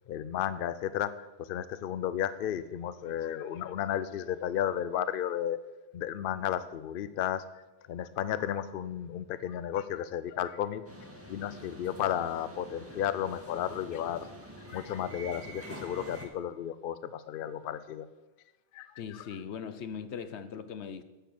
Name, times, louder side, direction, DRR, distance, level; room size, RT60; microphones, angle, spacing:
voice 1, 0.1-5.6 5.9-7.4 7.9-10.9 11.3-14.3 14.7-18.1 18.7-18.9, left 10 dB, 65° left, 14 dB, 0.7 m, -33 dB
sound 1, 10.8-16.3, right 1 dB, 15° right, 1.7 m, -46 dB
voice 2, 19.0-21.0, left 7 dB, 85° left, 12 dB, 1.1 m, -40 dB
10.5 x 6.7 x 7.6 m, 1.1 s
omnidirectional pair, 1.1 m